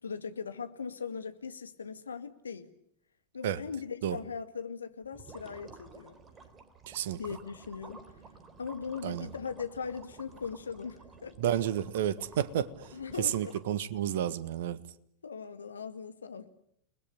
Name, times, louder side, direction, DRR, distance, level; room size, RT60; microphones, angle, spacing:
voice 1, 0.0-2.7 3.3-6.2 7.2-8.0 8.6-11.3 12.9-13.5 15.2-16.5, left 6 dB, 70° left, 2.0 m, -39 dB
sound 1, 5.0-14.0, right 4 dB, 20° right, 3.6 m, -52 dB
voice 2, 6.9-7.2 9.0-9.3 11.4-12.7 13.2-14.8, right 10 dB, 55° right, 1.5 m, -30 dB
30.0 x 20.5 x 9.5 m
figure-of-eight pair, 90°, 0 cm